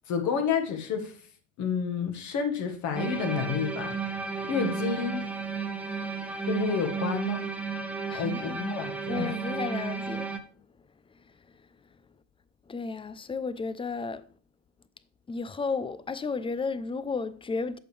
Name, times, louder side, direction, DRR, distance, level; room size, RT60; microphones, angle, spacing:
voice 1, 0.1-1.1 1.6-3.9 4.5-5.2 6.4-7.5 8.2-9.3, left 6 dB, 50° left, 1.7 m, -29 dB
sound 1, 3.0-10.4, right 5 dB, 5° right, 1.1 m, -33 dB
voice 2, 8.1-8.6 9.1-10.3 11.1-11.9 12.7-14.2 15.3-17.8, left 4 dB, 15° left, 0.6 m, -33 dB
8.5 x 6.8 x 3.3 m
hypercardioid pair, 65°, 36 cm